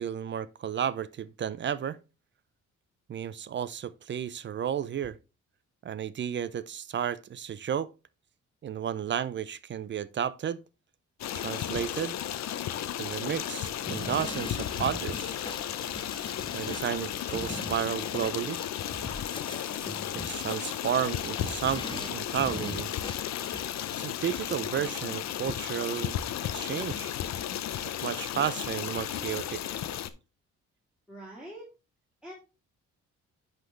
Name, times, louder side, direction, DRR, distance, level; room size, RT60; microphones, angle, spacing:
voice 1, 0.0-2.0 3.1-5.2 5.8-7.9 8.6-10.6 11.3-12.2 13.0-15.4 16.5-18.6 20.2-22.9 24.0-26.2 26.5-27.1 28.0-29.6, right 9 dB, 40° right, 0.5 m, -32 dB
Stream, 11.2-30.1, left 11 dB, 60° left, 0.7 m, -34 dB
sound 1, 13.9-24.0, left 2 dB, 15° left, 0.8 m, -42 dB
voice 2, 31.1-31.7 32.2-32.3, right 1 dB, 5° right, 2.5 m, -44 dB
10.5 x 4.0 x 3.2 m
cardioid pair, 90°, 30 cm